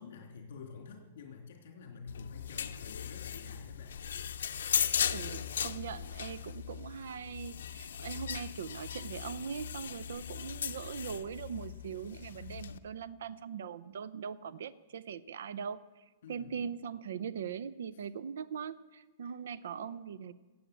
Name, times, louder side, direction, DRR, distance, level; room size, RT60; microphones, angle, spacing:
voice 1, 0.0-4.0 16.2-16.6 19.2-19.3, left 5 dB, 60° left, 1 dB, 3.1 m, -48 dB
sound 1, 2.1-12.8, left 8 dB, 85° left, 0.8 m, -37 dB
voice 2, 5.1-20.3, right 7 dB, 70° right, 16 dB, 0.5 m, -41 dB
15.5 x 8.6 x 8.3 m, 1.3 s
hypercardioid pair, 170°, 0 cm